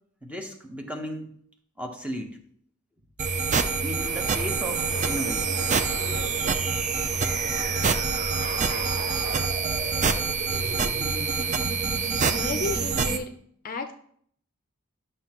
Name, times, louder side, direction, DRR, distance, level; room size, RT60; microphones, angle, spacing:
voice 1, 0.2-1.3 1.8-2.4 3.8-5.6, right 1 dB, 5° right, 3 dB, 0.9 m, -35 dB
sound 1, 3.2-13.2, right 5 dB, 35° right, 0.5 m, -26 dB
sound 2, 4.0-9.5, right 1 dB, 70° right, 1.7 m, -39 dB
voice 2, 12.2-13.3 13.6-13.9, left 3 dB, 40° left, 7 dB, 0.5 m, -32 dB
11.5 x 6.3 x 3.0 m, 0.63 s
head